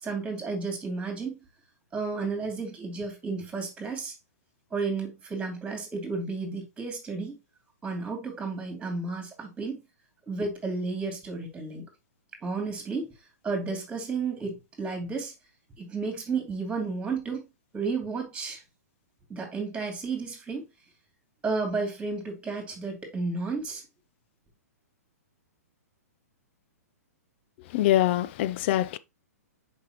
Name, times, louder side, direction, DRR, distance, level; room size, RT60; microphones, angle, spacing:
voice 1, 0.0-1.4 1.9-4.1 4.7-7.4 7.8-9.8 10.3-11.8 12.4-13.1 13.4-15.3 15.8-17.5 17.7-18.6 19.3-20.7 21.4-23.8, right 4 dB, 10° right, 2.6 m, -32 dB
voice 2, 27.7-29.0, left 13 dB, 45° left, 0.5 m, -24 dB
6.7 x 5.2 x 2.9 m
figure-of-eight pair, 120°, 9 cm